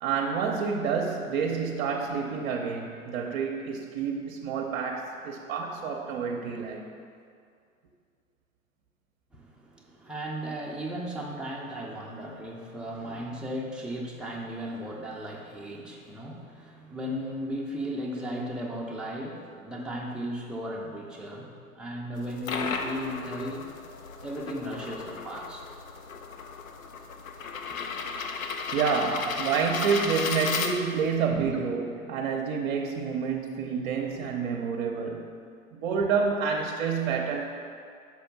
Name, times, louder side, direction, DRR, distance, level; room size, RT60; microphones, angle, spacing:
voice 1, 0.0-6.9 28.7-35.3 35.7-37.6, right 6 dB, 40° right, 1 dB, 0.7 m, -28 dB
voice 2, 9.3-23.7 24.2-25.7 29.1-29.4 29.9-30.0 31.3-31.6, equal, ahead, -3 dB, 0.5 m, -36 dB
sound 1, 22.2-31.2, left 5 dB, 75° left, 0.8 m, -34 dB
6.0 x 5.1 x 5.8 m, 2.3 s
figure-of-eight pair, 105°, 42 cm